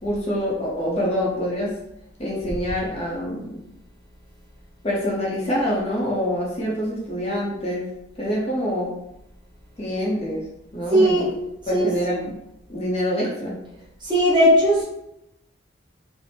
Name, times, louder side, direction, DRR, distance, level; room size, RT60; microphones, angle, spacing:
voice 1, 0.0-1.7 2.2-3.6 4.8-7.9 8.2-8.9 9.8-10.4 10.7-11.3 11.7-12.3 12.7-13.6, equal, 30° left, -4 dB, 0.6 m, -25 dB
voice 2, 10.9-11.3 11.7-12.2 14.0-14.8, equal, 25° right, -6 dB, 0.8 m, -18 dB
3.3 x 2.0 x 2.7 m, 0.83 s
head